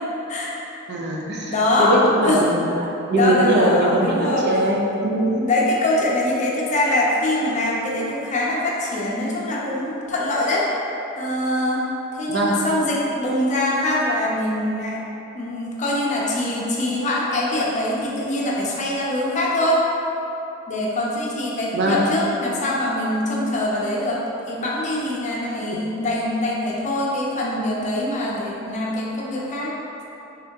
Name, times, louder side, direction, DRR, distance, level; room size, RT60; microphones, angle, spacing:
voice 1, 0.9-5.5 12.3-12.5 21.7-22.0, right 1 dB, 55° right, -2 dB, 0.5 m, -21 dB
voice 2, 1.5-1.9 2.2-2.4 3.1-4.6 5.4-10.7 11.2-11.9 12.1-15.0 15.3-19.8 20.7-29.7, left 1 dB, 35° left, -4 dB, 0.5 m, -23 dB
3.6 x 3.3 x 2.8 m, 2.9 s
head